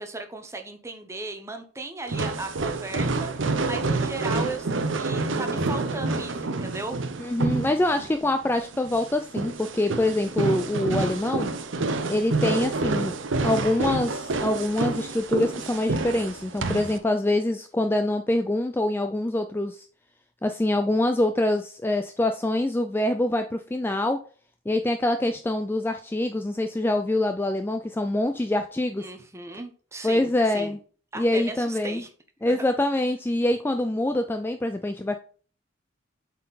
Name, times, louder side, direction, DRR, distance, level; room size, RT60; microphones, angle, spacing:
voice 1, 0.0-7.0 29.0-30.8 31.1-32.1 32.4-32.6, right 2 dB, 15° right, 5 dB, 0.8 m, -36 dB
sound 1, 2.1-17.0, right 3 dB, 75° right, 0.7 m, -28 dB
voice 2, 7.2-11.5 12.1-13.1 13.4-19.9 20.4-24.2 24.7-29.0 30.0-30.8 31.1-32.0 32.4-35.2, left 1 dB, 10° left, 7 dB, 0.3 m, -25 dB
7.8 x 4.3 x 4.0 m, 0.41 s
head